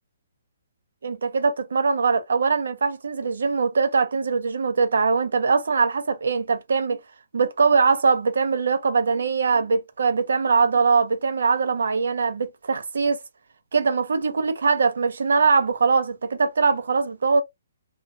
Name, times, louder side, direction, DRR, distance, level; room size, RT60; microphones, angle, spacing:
voice 1, 1.0-7.0 7.3-13.2 13.7-17.4, right 4 dB, 70° right, 0.7 m, -22 dB
2.4 x 2.1 x 2.6 m
hypercardioid pair, 180°, 0 cm